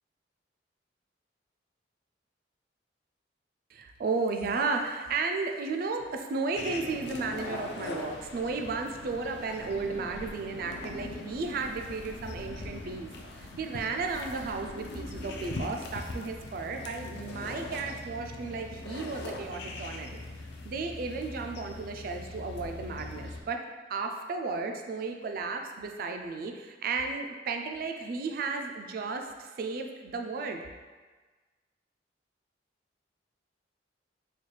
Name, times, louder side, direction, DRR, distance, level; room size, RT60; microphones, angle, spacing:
voice 1, 3.7-13.1 13.4-20.2 20.6-23.6 23.9-30.6, right 4 dB, 55° right, 4 dB, 0.3 m, -34 dB
sound 1, 6.5-23.4, left 2 dB, 70° left, 0.4 m, -41 dB
4.0 x 2.2 x 3.2 m, 1.4 s
head